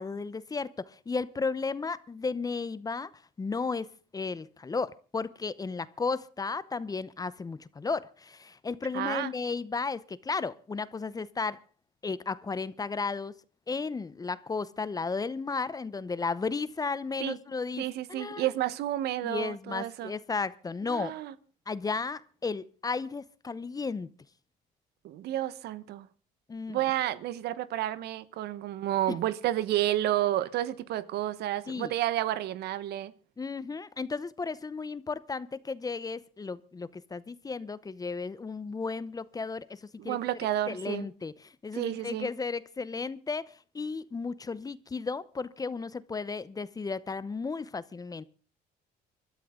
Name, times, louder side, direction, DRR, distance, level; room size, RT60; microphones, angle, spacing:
voice 1, 0.0-3.1 3.4-11.6 12.0-13.3 13.7-18.5 19.2-21.2 21.7-24.1 26.5-26.8 31.7-31.9 33.4-39.8 40.0-40.2 40.7-48.2, left 4 dB, 20° left, 0.8 m, -34 dB
voice 2, 8.9-9.3 17.2-17.4 17.8-20.1 20.9-21.3 25.0-26.1 26.7-33.1 40.0-41.1 41.7-42.3, right 13 dB, 75° right, 1.1 m, -31 dB
24.5 x 13.0 x 3.8 m
cardioid pair, 110°, 17 cm